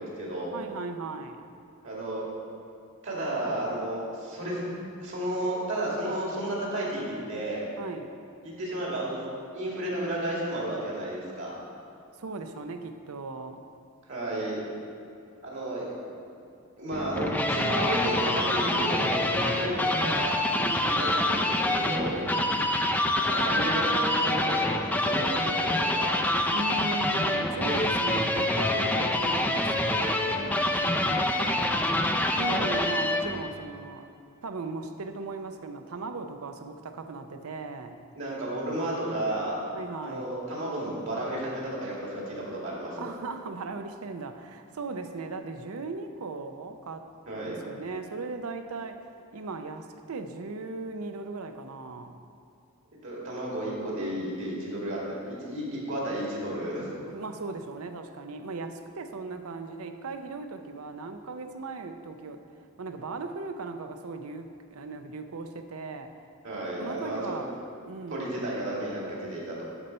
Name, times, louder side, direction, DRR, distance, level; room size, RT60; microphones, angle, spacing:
voice 1, 0.0-0.5 1.8-2.2 3.0-4.7 5.0-7.6 8.4-11.5 14.1-14.6 15.4-15.9 16.8-20.3 20.8-22.2 23.2-26.1 32.4-32.8 38.1-39.6 40.0-43.1 47.3-47.6 53.0-56.9 66.4-67.4 68.1-69.6, right 1 dB, 60° right, -5 dB, 2.4 m, -32 dB
voice 2, 0.5-1.4 7.8-8.1 12.2-13.6 19.5-19.9 20.5-21.2 22.1-22.7 26.5-31.9 32.4-34.1 34.4-38.0 39.7-40.3 43.0-47.1 47.3-52.2 57.1-62.4 62.8-66.1 66.8-67.5 67.9-68.3, right 3 dB, 80° right, 7 dB, 0.6 m, -38 dB
sound 1, 16.9-33.4, left 1 dB, 5° left, 0.4 m, -26 dB
12.0 x 4.3 x 5.3 m, 2.5 s
head